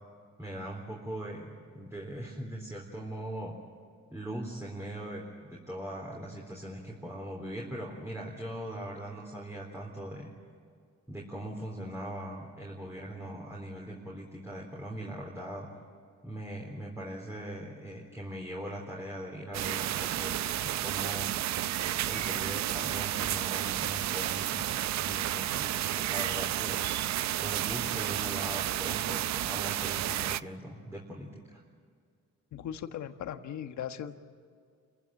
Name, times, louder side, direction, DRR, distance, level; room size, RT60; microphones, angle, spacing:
voice 1, 0.4-3.6 4.1-10.3 11.1-15.7 16.2-21.3 21.8-27.1 27.4-31.6, right 1 dB, 10° right, -2 dB, 3.8 m, -40 dB
sound 1, 19.5-30.4, right 13 dB, 65° right, 0.6 m, -31 dB
voice 2, 32.5-34.2, left 9 dB, 70° left, 8 dB, 1.4 m, -38 dB
28.0 x 15.5 x 8.9 m, 2.2 s
cardioid pair, 90°, 30 cm